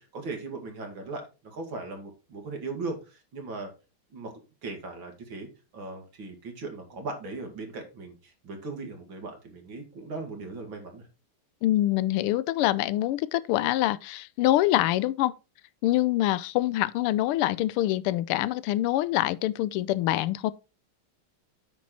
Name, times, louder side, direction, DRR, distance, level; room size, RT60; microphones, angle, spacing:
voice 1, 0.0-3.7 4.1-4.3 4.6-11.1, right 3 dB, 65° right, 2.8 m, -38 dB
voice 2, 11.6-15.3 15.8-20.5, left 15 dB, 90° left, 1.5 m, -25 dB
8.7 x 5.9 x 4.3 m
omnidirectional pair, 2.4 m